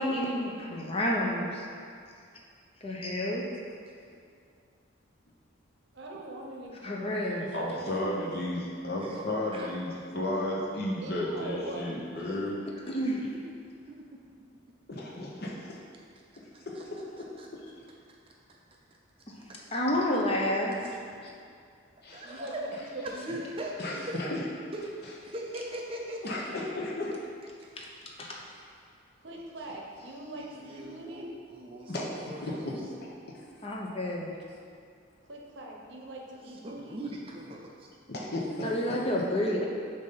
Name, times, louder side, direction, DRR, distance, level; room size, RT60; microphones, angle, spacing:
voice 1, 0.0-1.7 2.8-3.4 6.8-7.5 12.9-13.3 19.7-20.8 21.2-21.3 27.8-27.9 28.2-28.4 33.6-34.3 38.6-39.7, left 1 dB, 30° left, -2 dB, 0.6 m, -29 dB
voice 2, 5.9-8.4 11.0-11.9 22.2-22.5 22.9-23.6 29.2-31.3 35.3-37.0, right 1 dB, 55° right, -1 dB, 0.8 m, -42 dB
voice 3, 7.5-12.6 14.9-15.5 16.7-17.0 22.0-22.2 23.8-24.4 26.2-27.2 31.9-32.2 32.4-32.7 33.0-33.4 38.1-39.0, left 1 dB, 50° left, -3 dB, 0.9 m, -33 dB
voice 4, 16.5-16.8 17.2-17.5 19.5-19.8 22.1-22.7 23.0-24.2 24.7-26.4 28.3-28.4 29.3-29.8 30.3-32.7 36.4-37.9, right 1 dB, 25° right, -1 dB, 0.5 m, -41 dB
7.1 x 2.7 x 5.6 m, 2.3 s
head